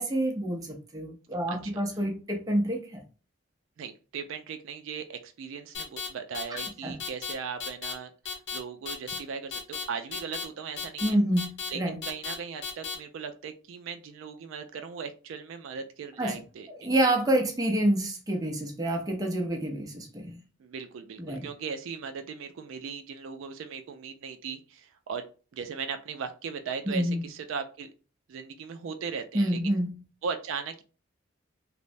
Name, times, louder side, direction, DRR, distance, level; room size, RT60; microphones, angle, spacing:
voice 1, 0.0-3.0 6.8-7.0 11.0-12.0 16.2-16.4 16.8-20.4 21.2-21.5 26.9-27.3 29.3-30.0, right 1 dB, 15° right, 0.5 m, -28 dB
voice 2, 3.8-11.2 11.7-16.9 20.6-25.3 25.5-27.9 28.3-29.8 30.2-30.8, right 6 dB, 75° right, 0.3 m, -38 dB
sound 1, 5.7-6.1 6.3-6.7 7.0-7.3 7.6-7.9 8.2-8.6 8.9-9.2 9.5-9.8 10.1-10.4 10.8-11.1 11.4-11.7 12.0-12.3 12.6-12.9, left 6 dB, 55° left, 0.7 m, -34 dB
3.1 x 2.0 x 2.5 m
head